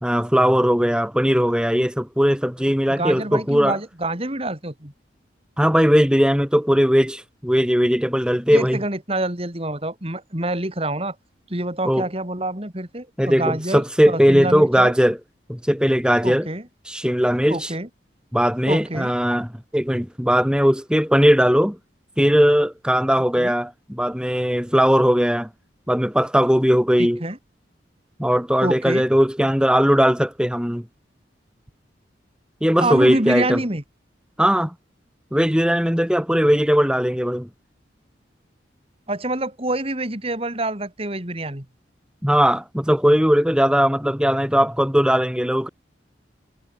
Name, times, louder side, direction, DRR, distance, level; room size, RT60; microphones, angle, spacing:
voice 1, 0.0-3.8 5.6-8.8 11.8-12.0 13.2-15.2 15.5-16.5 16.9-17.7 18.3-21.8 22.2-25.5 25.9-27.2 28.2-30.8 32.6-33.6 34.4-34.7 35.3-37.5 42.2-45.7, equal, 5° right, 3.7 m, -19 dB
voice 2, 2.9-4.9 8.5-11.2 11.5-14.9 16.2-16.6 17.5-17.9 18.7-19.1 23.4-23.5 27.0-27.4 28.6-29.1 32.8-33.8 39.1-41.7, right 1 dB, 30° right, 4.0 m, -26 dB
head